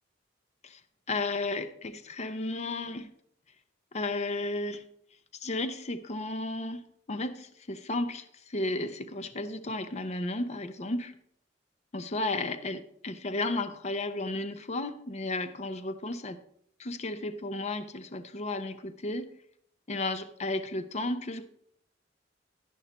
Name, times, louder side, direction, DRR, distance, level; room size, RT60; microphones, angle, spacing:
voice 1, 1.1-3.1 3.9-4.8 5.3-11.1 11.9-16.4 16.8-19.3 19.9-21.4, left 2 dB, 40° left, 11 dB, 0.6 m, -33 dB
11.5 x 11.0 x 3.0 m, 0.70 s
head